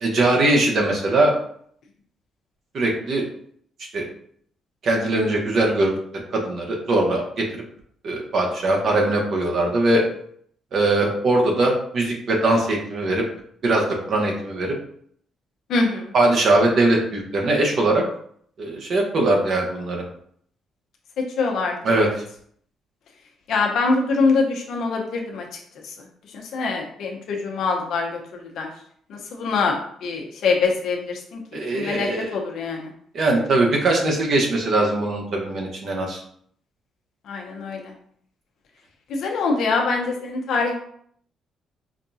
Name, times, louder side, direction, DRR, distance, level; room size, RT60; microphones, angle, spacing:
voice 1, 0.0-1.3 2.7-3.3 3.9-4.1 4.8-7.2 8.0-10.0 10.7-13.2 13.6-14.7 16.1-18.0 18.6-20.0 21.8-22.1 31.5-32.3 33.1-36.2, right 2 dB, 60° right, 0 dB, 1.1 m, -21 dB
voice 2, 15.7-16.1 21.2-22.1 23.5-25.5 25.8-26.1 26.3-28.7 29.1-31.4 31.7-32.9 37.3-37.9 39.1-40.8, left 4 dB, 75° left, 1 dB, 0.8 m, -24 dB
5.0 x 2.3 x 2.7 m, 0.63 s
cardioid pair, 90°, 0 cm